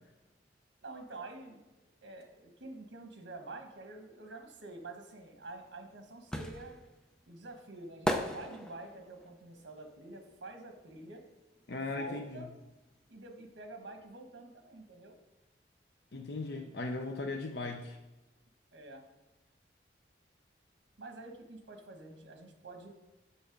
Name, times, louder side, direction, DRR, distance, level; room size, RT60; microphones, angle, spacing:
voice 1, 0.8-1.6 2.0-6.8 7.3-11.2 11.8-12.5 13.1-15.2 18.7-19.1 21.0-22.9, right 2 dB, 80° right, 5 dB, 1.2 m, -47 dB
sound 1, 5.4-11.3 11.6-13.2 13.4-13.5, equal, 5° left, 0.5 m, -38 dB
voice 2, 11.7-12.5 16.1-18.0, left 3 dB, 65° left, 3 dB, 0.6 m, -38 dB
7.2 x 5.5 x 5.1 m, 1.0 s
head